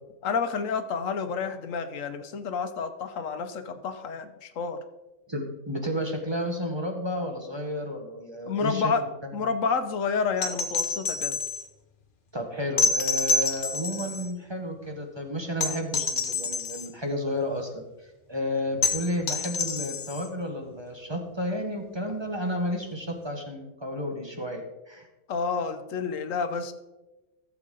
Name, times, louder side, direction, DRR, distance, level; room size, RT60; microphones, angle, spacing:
voice 1, 0.2-4.8 8.5-9.0 9.3-11.4 25.3-26.7, left 5 dB, 80° left, 9 dB, 1.2 m, -29 dB
voice 2, 5.3-8.9 12.3-17.8 18.3-25.1, equal, 20° right, 2 dB, 1.4 m, -32 dB
sound 1, 10.4-11.7 12.8-14.3 15.6-16.9 18.8-20.3 22.1-22.2, left 3 dB, 45° left, 1.1 m, -27 dB
14.5 x 7.4 x 3.9 m, 1.1 s
omnidirectional pair, 1.3 m